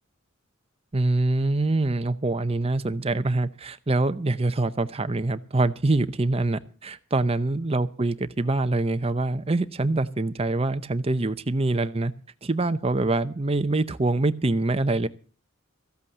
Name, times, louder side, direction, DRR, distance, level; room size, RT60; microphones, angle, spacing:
voice 1, 0.9-12.1 12.4-15.1, right 2 dB, 30° right, 11 dB, 0.7 m, -25 dB
14.5 x 8.3 x 7.2 m, 0.40 s
head